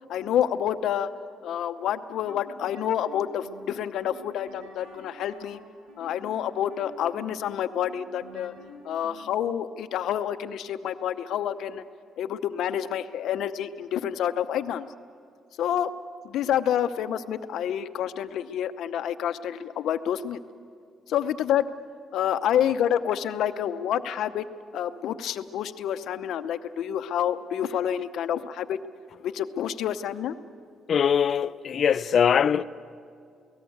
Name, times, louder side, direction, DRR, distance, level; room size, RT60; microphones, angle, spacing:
voice 1, 0.1-1.1 1.4-5.6 6.0-8.5 8.8-11.8 12.2-14.9 15.6-15.9 16.2-20.4 21.1-21.7 22.1-24.5 24.7-28.8 29.2-30.3, left 10 dB, 80° left, 0.9 m, -28 dB
sound 1, 2.1-9.5, left 1 dB, 90° right, 3.8 m, -49 dB
voice 2, 30.9-32.6, left 7 dB, 55° left, 0.6 m, -22 dB
29.5 x 18.0 x 8.0 m
cardioid pair, 90°, 0 cm